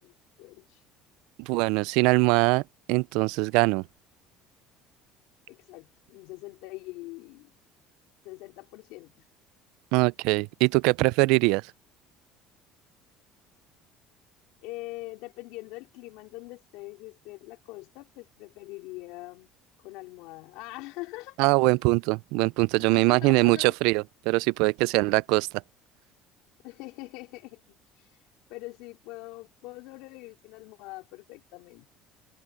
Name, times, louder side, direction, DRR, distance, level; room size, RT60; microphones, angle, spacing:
voice 1, 0.0-0.8 5.5-7.5 8.2-9.2 14.6-19.5 19.8-21.4 22.8-23.7 26.6-27.6 28.0-28.1 28.5-31.9, left 21 dB, 80° left, 4.5 m, -43 dB
voice 2, 1.4-2.6 2.9-3.8 9.9-11.6 21.4-25.5, right 25 dB, 80° right, 0.3 m, -22 dB
cardioid pair, 155°, 0 cm